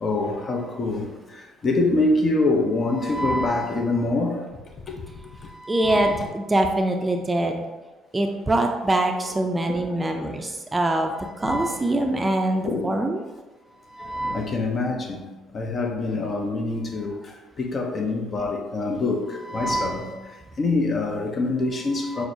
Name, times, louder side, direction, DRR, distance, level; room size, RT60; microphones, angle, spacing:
voice 1, 0.0-1.1 1.6-4.4 5.8-6.3 9.7-9.8 11.4-11.8 12.7-12.9 14.0-15.2 15.5-17.1 17.6-20.1 20.6-22.3, left 2 dB, 45° left, 2 dB, 0.7 m, -25 dB
voice 2, 5.7-7.6 8.1-13.2, right 1 dB, 20° right, 3 dB, 0.4 m, -23 dB
5.9 x 2.1 x 2.7 m, 1.2 s
hypercardioid pair, 55°, 0 cm